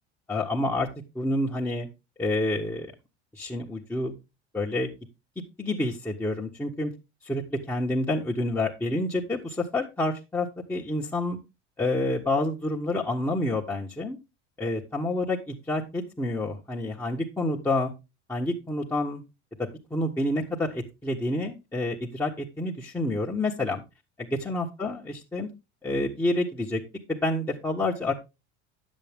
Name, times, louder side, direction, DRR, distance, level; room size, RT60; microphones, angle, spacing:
voice 1, 0.3-0.9 1.1-1.9 2.2-2.9 3.3-4.1 4.5-4.9 5.6-6.9 7.2-11.4 11.8-14.2 14.6-17.9 18.3-19.2 19.6-23.8 24.2-25.5 25.8-26.8 27.1-28.1, left 2 dB, 5° left, -5 dB, 1.4 m, -28 dB
9.8 x 7.4 x 3.5 m, 0.26 s
hypercardioid pair, 80°, 35 cm